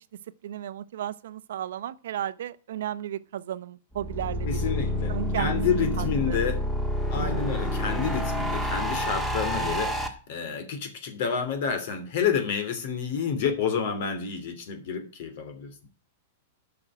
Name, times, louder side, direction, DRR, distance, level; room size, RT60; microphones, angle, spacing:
voice 1, 0.4-5.6 6.0-6.4 7.1-7.5 9.7-10.0, right 11 dB, 75° right, 0.8 m, -35 dB
sound 1, 3.9-10.1, equal, 5° left, 1.6 m, -28 dB
voice 2, 4.4-6.6 7.1-15.7, left 6 dB, 55° left, 3.0 m, -29 dB
11.0 x 6.2 x 8.8 m
supercardioid pair, 150°, 0 cm